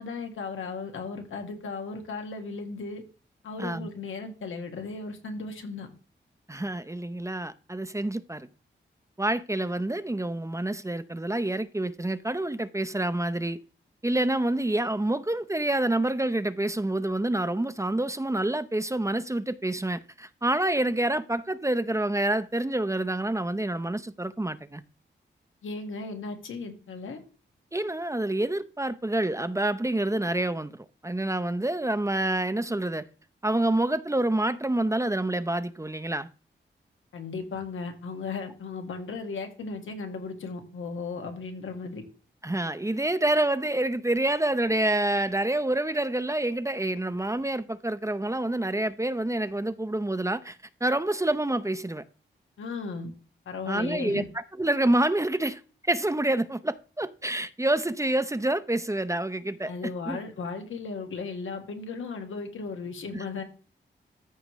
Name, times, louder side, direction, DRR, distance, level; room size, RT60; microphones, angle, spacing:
voice 1, 0.0-3.0 3.4-5.9 25.6-27.2 37.1-42.0 52.6-53.1 53.5-54.3 59.7-63.4, left 4 dB, 90° left, 1.8 m, -36 dB
voice 2, 3.6-3.9 6.5-8.5 9.2-13.6 14.0-24.8 27.7-33.0 33.4-36.3 42.4-52.0 53.7-55.6 55.9-59.7 60.1-60.2, right 1 dB, 15° right, 0.7 m, -27 dB
14.0 x 4.9 x 3.1 m
cardioid pair, 50°, 20 cm